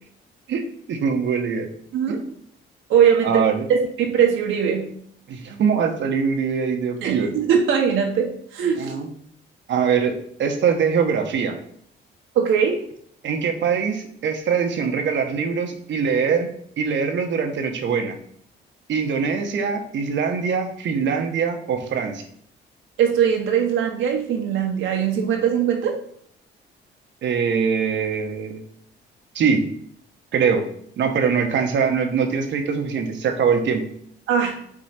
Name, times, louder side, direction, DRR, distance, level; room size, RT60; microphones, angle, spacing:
voice 1, 0.5-1.7 2.1-2.2 3.2-3.7 5.3-7.4 8.8-9.1 9.7-11.6 13.2-16.5 16.8-18.1 18.9-22.2 27.2-28.6 29.3-29.6 30.3-30.6 31.0-33.8, right 6 dB, 70° right, 5 dB, 1.1 m, -22 dB
voice 2, 2.9-4.9 7.0-8.9 12.3-12.8 23.0-26.0 34.3-34.6, right 7 dB, 85° right, 1 dB, 1.3 m, -21 dB
5.0 x 3.8 x 5.8 m, 0.66 s
cardioid pair, 90°, 20 cm